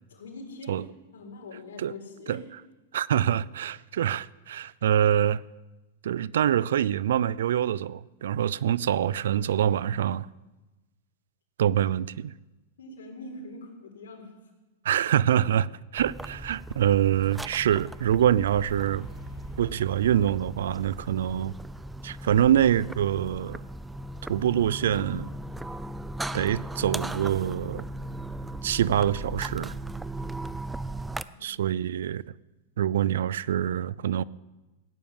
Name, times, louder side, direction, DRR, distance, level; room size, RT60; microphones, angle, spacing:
voice 1, 0.1-0.8 1.1-2.4 11.7-11.8 12.8-14.3 31.2-31.7, left 2 dB, 85° left, 4.2 m, -43 dB
voice 2, 2.9-5.4 6.0-10.3 11.6-12.3 14.8-19.1 19.6-21.6 22.0-23.6 24.3-25.3 26.3-27.8 28.6-29.7 31.4-32.2 32.8-34.2, right 10 dB, 80° right, 0.4 m, -25 dB
sound 1, 16.0-31.2, right 1 dB, 5° right, 0.4 m, -37 dB
sound 2, 18.5-21.4, right 2 dB, 25° right, 6.7 m, -46 dB
16.0 x 9.3 x 7.3 m
hypercardioid pair, 130°, 0 cm